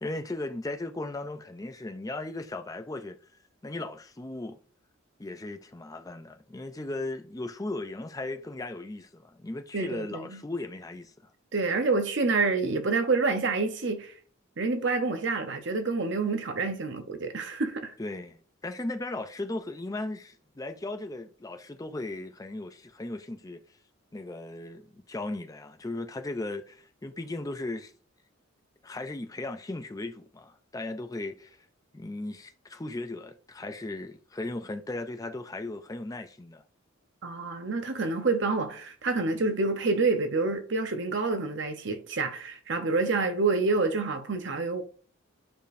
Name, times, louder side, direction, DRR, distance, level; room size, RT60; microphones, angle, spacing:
voice 1, 0.0-3.2 3.6-4.6 5.2-11.3 18.0-23.6 24.1-27.9 28.8-31.6 31.9-36.6, left 2 dB, 15° left, 0.4 m, -37 dB
voice 2, 9.7-10.4 11.5-14.1 14.6-17.9 37.2-44.8, right 3 dB, 55° right, 0.8 m, -28 dB
8.9 x 5.1 x 2.6 m
head